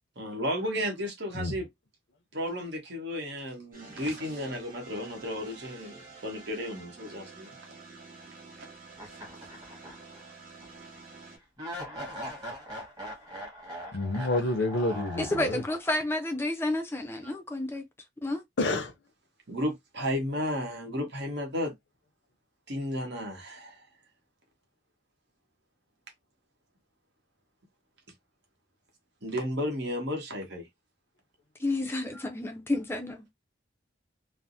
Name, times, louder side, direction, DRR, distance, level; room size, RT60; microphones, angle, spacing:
voice 1, 0.2-1.7 2.3-7.6 9.1-9.2 17.2-17.3 19.5-21.7 22.7-23.8 29.2-30.7 32.1-32.3, equal, 70° right, 1.1 m, -33 dB
sound 1, 3.7-11.4, right 4 dB, 50° right, 1.7 m, -49 dB
sound 2, 8.9-10.3 10.6-10.7 11.6-15.9, equal, 20° right, 1.2 m, -41 dB
voice 2, 13.9-15.6 18.6-18.9, left 2 dB, 80° left, 0.6 m, -28 dB
voice 3, 15.2-17.8 18.2-18.4 31.6-33.3, left 2 dB, 15° left, 0.4 m, -30 dB
3.3 x 2.0 x 2.6 m
head